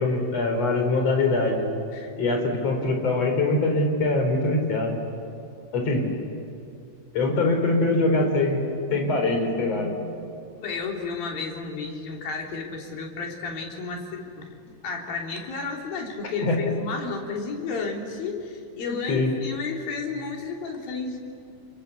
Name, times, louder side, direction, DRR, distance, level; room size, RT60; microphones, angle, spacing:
voice 1, 0.0-1.7 2.2-5.0 5.7-6.1 7.1-8.6 8.9-9.9 16.4-16.6 18.9-19.3, left 2 dB, 45° left, 3 dB, 5.0 m, -23 dB
voice 2, 10.6-21.2, left 4 dB, 80° left, 1 dB, 5.0 m, -32 dB
30.0 x 22.5 x 8.3 m, 2.6 s
omnidirectional pair, 4.1 m